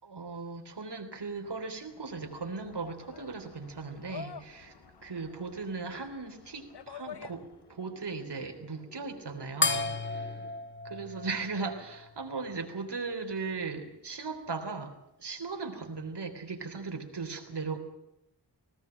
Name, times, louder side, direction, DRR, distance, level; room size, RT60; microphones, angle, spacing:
voice 1, 0.0-4.7 5.0-10.4 10.8-17.8, right 4 dB, 70° right, 4 dB, 3.6 m, -38 dB
sound 1, 1.5-7.8, left 7 dB, 65° left, 0.9 m, -49 dB
sound 2, 2.2-10.5, right 1 dB, 5° right, 4.0 m, -58 dB
sound 3, 9.6-12.4, left 3 dB, 25° left, 0.9 m, -33 dB
19.5 x 17.5 x 9.1 m, 0.84 s
wide cardioid pair, 90°, 43 cm